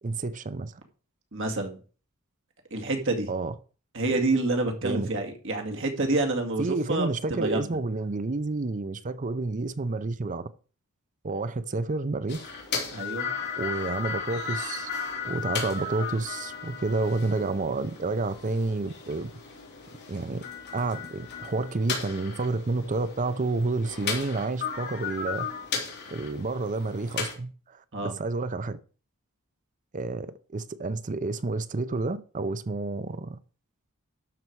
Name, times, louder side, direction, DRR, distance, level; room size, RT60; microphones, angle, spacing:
voice 1, 0.0-0.8 3.3-3.5 4.1-4.2 4.8-5.1 6.6-10.5 11.2-12.4 13.6-14.9 15.2-19.3 20.1-20.4 20.7-25.5 26.1-28.8 29.9-33.4, right 3 dB, 35° right, 0.6 m, -30 dB
voice 2, 1.3-1.8 2.7-3.3 3.9-6.6 6.9-7.7 12.9-13.3 27.9-28.1, right 2 dB, 60° right, 2.2 m, -28 dB
sound 1, 12.3-27.3, left 5 dB, 50° left, 3.2 m, -35 dB
12.0 x 6.5 x 4.7 m
head